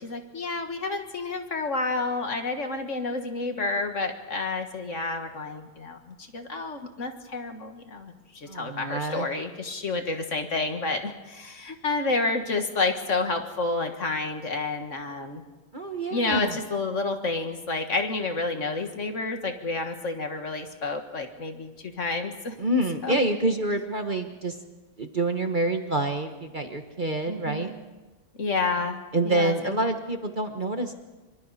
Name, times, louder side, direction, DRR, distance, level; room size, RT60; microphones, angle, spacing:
voice 1, 0.0-15.4 16.1-21.7 22.0-22.5 23.0-23.2 27.3-27.8 28.4-29.8, left 3 dB, 35° left, 5 dB, 1.7 m, -30 dB
voice 2, 8.5-9.3 15.7-16.6 22.6-24.5 25.0-27.7 29.1-30.9, right 2 dB, 35° right, 5 dB, 0.8 m, -27 dB
26.0 x 24.5 x 4.2 m, 1.2 s
omnidirectional pair, 2.4 m